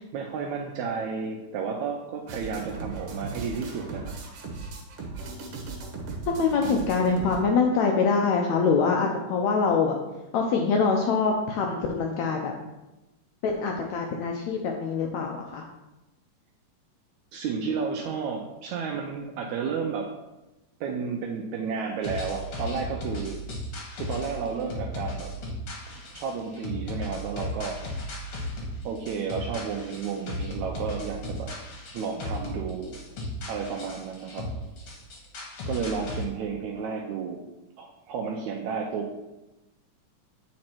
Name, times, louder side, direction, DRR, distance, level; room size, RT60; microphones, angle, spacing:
voice 1, 0.1-4.2 6.6-6.8 17.3-20.1 20.8-23.4 24.0-25.3 25.9-27.8 28.8-31.5 31.9-33.0 33.5-34.5 35.7-37.4 37.8-39.3, right 5 dB, 80° right, 2 dB, 1.7 m, -32 dB
sound 1, 2.3-7.4, right 3 dB, 60° right, 1.8 m, -37 dB
voice 2, 6.3-10.0 10.3-12.5 13.4-15.6, left 5 dB, 80° left, 2 dB, 1.6 m, -24 dB
sound 2, 22.0-36.2, left 1 dB, 55° left, 1.8 m, -36 dB
8.5 x 4.3 x 4.4 m, 1.0 s
omnidirectional pair, 3.8 m